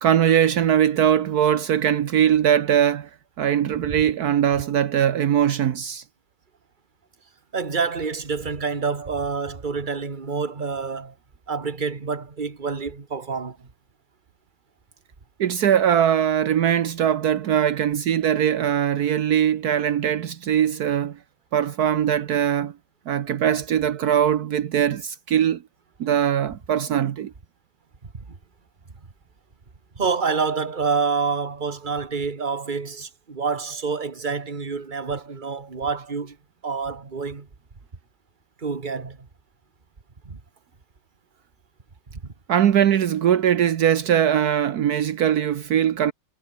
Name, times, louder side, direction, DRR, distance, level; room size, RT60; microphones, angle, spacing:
voice 1, 0.0-3.1 3.4-6.0 15.4-21.2 21.5-22.7 23.1-25.6 26.0-27.3 42.5-46.1, right 9 dB, 70° right, 1.4 m, -21 dB
voice 2, 7.5-11.1 11.5-13.7 28.1-28.2 30.0-36.4 36.6-37.5 38.6-39.2 40.3-40.4 42.2-42.3, right 5 dB, 30° right, 1.9 m, -27 dB
omnidirectional pair, 1.7 m